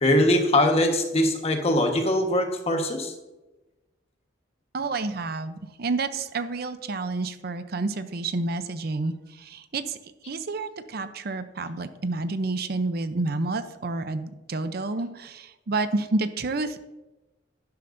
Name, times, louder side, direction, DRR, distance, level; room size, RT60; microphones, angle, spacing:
voice 1, 0.0-3.1, left 1 dB, 35° left, 4 dB, 1.4 m, -22 dB
voice 2, 4.7-16.8, right 3 dB, 60° right, 11 dB, 0.6 m, -29 dB
11.5 x 11.0 x 2.6 m, 1.1 s
head